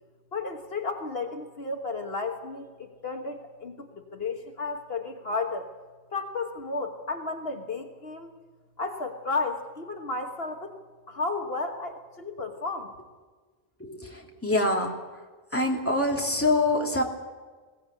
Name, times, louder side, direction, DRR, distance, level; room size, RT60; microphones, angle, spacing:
voice 1, 0.3-5.7 6.1-8.3 8.8-10.8 11.1-12.9, left 3 dB, 65° left, 3 dB, 1.6 m, -33 dB
voice 2, 13.8-15.2 15.5-17.0, left 2 dB, 10° left, -1 dB, 2.9 m, -25 dB
21.5 x 17.5 x 8.3 m, 1.4 s
omnidirectional pair, 1.1 m